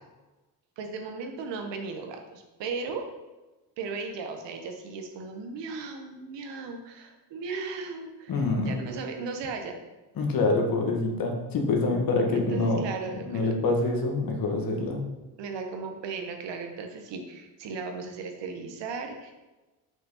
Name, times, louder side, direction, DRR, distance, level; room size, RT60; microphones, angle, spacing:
voice 1, 0.8-3.1 3.8-9.8 12.3-13.5 15.4-19.3, right 4 dB, 80° right, 4 dB, 1.2 m, -36 dB
voice 2, 8.3-8.8 10.2-12.8 13.3-15.0, left 3 dB, 55° left, 2 dB, 1.5 m, -26 dB
6.0 x 5.4 x 5.6 m, 1.1 s
cardioid pair, 135°, 43 cm